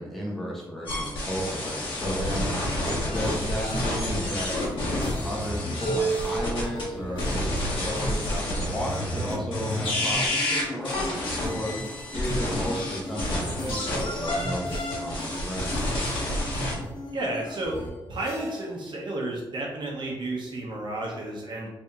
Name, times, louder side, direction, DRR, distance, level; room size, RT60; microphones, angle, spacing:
voice 1, 0.0-2.4 2.9-4.5 5.2-11.7 12.1-15.8, equal, ahead, -5 dB, 0.9 m, -33 dB
sound 1, 0.9-6.8 7.2-16.7, left 1 dB, 75° left, 1.5 m, -29 dB
sound 2, 2.6-18.8, right 1 dB, 55° left, 1.5 m, -36 dB
voice 2, 17.1-17.8 18.1-21.7, right 1 dB, 60° right, -2 dB, 0.8 m, -32 dB
3.4 x 2.8 x 3.5 m, 1.1 s
wide cardioid pair, 110°, 9 cm